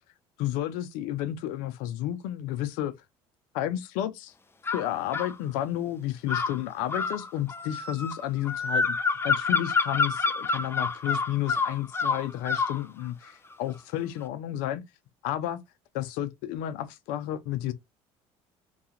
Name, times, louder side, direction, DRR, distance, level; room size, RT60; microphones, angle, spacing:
voice 1, 0.4-2.9 3.5-4.3 4.7-9.0 9.2-14.8 15.2-15.6 15.9-17.7, left 12 dB, 80° left, 0.6 m, -31 dB
sound 1, 4.7-5.3 6.3-12.8, left 4 dB, 15° left, 0.4 m, -28 dB
2.4 x 2.3 x 2.8 m
supercardioid pair, 75°, 14 cm